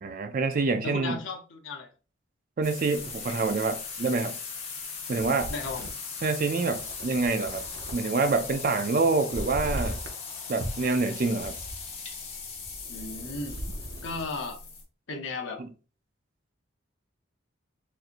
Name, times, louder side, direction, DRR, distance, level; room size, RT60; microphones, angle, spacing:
voice 1, 0.0-1.2 2.6-4.4 5.1-5.5 6.2-7.6 7.9-10.0 10.5-11.6 15.6-15.7, right 3 dB, 40° right, 0.4 m, -26 dB
voice 2, 0.8-1.9 5.5-5.9 12.9-13.6 14.0-14.6 15.1-15.6, left 3 dB, 70° left, 0.8 m, -35 dB
sound 1, 2.6-14.8, left 5 dB, 30° left, 0.9 m, -39 dB
sound 2, 5.2-8.3 8.6-10.3 10.6-14.3, equal, 65° right, 0.7 m, -39 dB
4.2 x 2.6 x 2.5 m
head